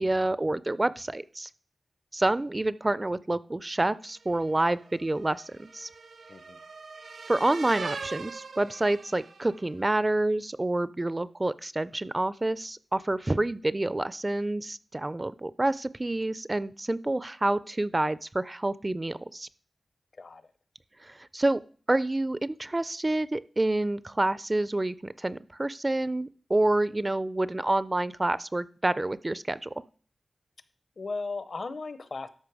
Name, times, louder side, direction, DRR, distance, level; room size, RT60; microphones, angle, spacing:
voice 1, 0.0-1.5 2.1-5.9 7.3-19.5 21.0-21.6 21.9-29.7, right 2 dB, 25° right, 17 dB, 0.4 m, -28 dB
sound 1, 4.3-9.7, right 4 dB, 80° right, 0.8 m, -42 dB
voice 2, 31.0-32.3, left 3 dB, 60° left, 13 dB, 0.8 m, -36 dB
12.5 x 5.4 x 4.8 m, 0.44 s
wide cardioid pair, 100°, 0 cm